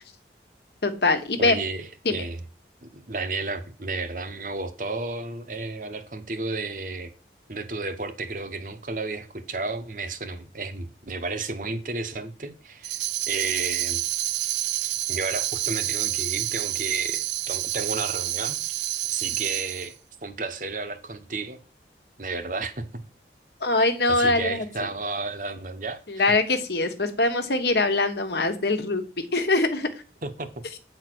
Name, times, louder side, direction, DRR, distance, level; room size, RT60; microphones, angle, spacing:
voice 1, 0.8-1.6 2.0-2.2 23.6-24.7 26.1-29.9, left 2 dB, 70° left, 1.2 m, -23 dB
voice 2, 1.4-2.4 2.9-7.1 7.5-13.0 13.3-14.0 15.1-18.6 19.1-19.9 20.2-21.6 22.2-23.0 24.1-26.2 30.2-30.6, right 3 dB, 45° right, 1.0 m, -32 dB
Tambourine, 12.8-19.9, right 15 dB, 85° right, 0.5 m, -28 dB
8.9 x 4.4 x 6.1 m
head